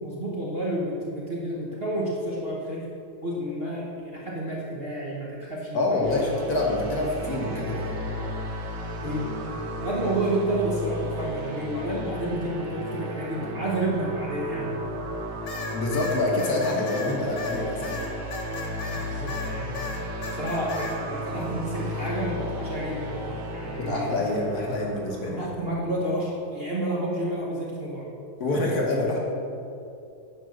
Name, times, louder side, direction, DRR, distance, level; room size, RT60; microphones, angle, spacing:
voice 1, 0.0-2.9 3.2-6.3 9.0-9.4 9.8-14.8 18.9-19.8 20.2-24.1 25.3-28.1, right 1 dB, 35° right, -5 dB, 1.1 m, -30 dB
voice 2, 5.7-8.0 15.7-18.0 23.7-25.4 28.4-29.2, left 2 dB, 55° left, -1 dB, 1.5 m, -26 dB
sound 1, 6.0-25.5, equal, 90° right, 1.7 m, -34 dB
sound 2, 15.5-19.5 19.7-21.0, left 4 dB, 75° left, 2.2 m, -36 dB
9.6 x 4.7 x 6.3 m, 2.6 s
omnidirectional pair, 2.2 m